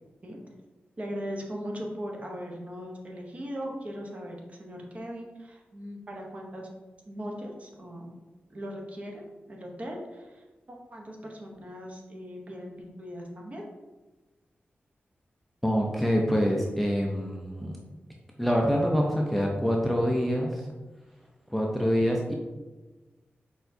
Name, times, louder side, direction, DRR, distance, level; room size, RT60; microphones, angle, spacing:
voice 1, 1.0-6.7 7.1-8.1 8.5-13.6, equal, 35° right, 0 dB, 0.7 m, -39 dB
voice 2, 15.6-17.8 18.4-20.6 21.5-22.3, equal, ahead, -1 dB, 0.4 m, -25 dB
4.5 x 4.4 x 2.6 m, 1.2 s
wide cardioid pair, 160°, 4 cm